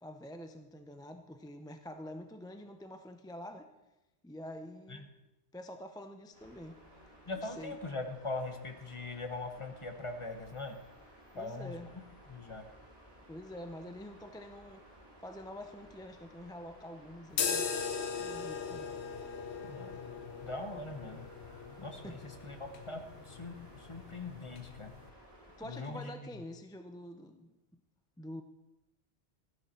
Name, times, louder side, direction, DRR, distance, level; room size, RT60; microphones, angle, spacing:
voice 1, 0.0-3.7 4.2-5.1 5.5-6.8 7.3-7.8 11.3-11.9 13.3-14.8 15.2-17.7 18.2-18.9 22.0-22.3 25.6-27.6 28.2-28.4, left 1 dB, 5° left, 6 dB, 0.4 m, -46 dB
sound 1, 6.3-25.7, equal, 20° right, 5.1 m, -57 dB
voice 2, 7.3-10.8 11.3-11.8 12.3-12.6 19.7-20.1 20.4-21.3 21.8-24.9 25.6-26.1, left 2 dB, 30° left, 5 dB, 1.1 m, -41 dB
sound 2, 17.3-25.1, left 6 dB, 75° left, 1.2 m, -39 dB
14.0 x 10.5 x 4.4 m, 0.99 s
omnidirectional pair, 1.1 m